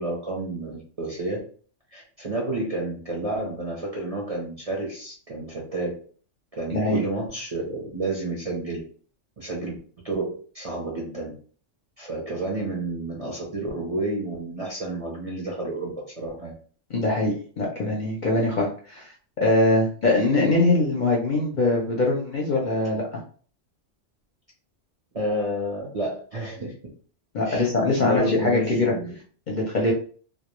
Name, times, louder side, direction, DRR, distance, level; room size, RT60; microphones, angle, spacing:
voice 1, 0.0-1.4 1.9-5.9 6.6-8.8 9.4-9.8 10.0-11.3 12.0-15.9 16.2-16.5 25.1-26.7 27.4-27.7 28.0-29.1, right 2 dB, 40° right, -3 dB, 0.5 m, -30 dB
voice 2, 16.9-23.2 27.3-28.9 29.5-29.9, left 2 dB, 50° left, -2 dB, 0.6 m, -22 dB
2.3 x 2.1 x 3.0 m, 0.44 s
omnidirectional pair, 1.3 m